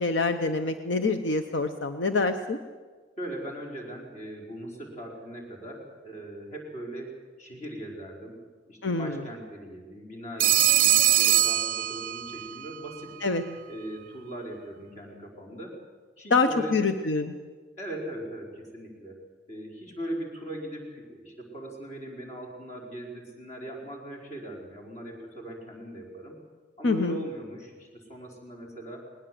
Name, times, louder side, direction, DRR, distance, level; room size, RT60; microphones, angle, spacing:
voice 1, 0.0-2.6 8.8-9.2 13.2-13.4 16.3-17.3 26.8-27.2, left 3 dB, 75° left, 8 dB, 0.9 m, -26 dB
voice 2, 3.2-7.1 7.4-8.4 8.7-13.1 13.7-15.8 16.2-16.7 17.8-19.2 19.5-26.4 26.8-29.1, right 1 dB, 40° left, -1 dB, 4.9 m, -39 dB
Telephone, 10.4-12.5, right 12 dB, 50° right, 0.5 m, -22 dB
20.0 x 19.5 x 7.8 m, 1.5 s
head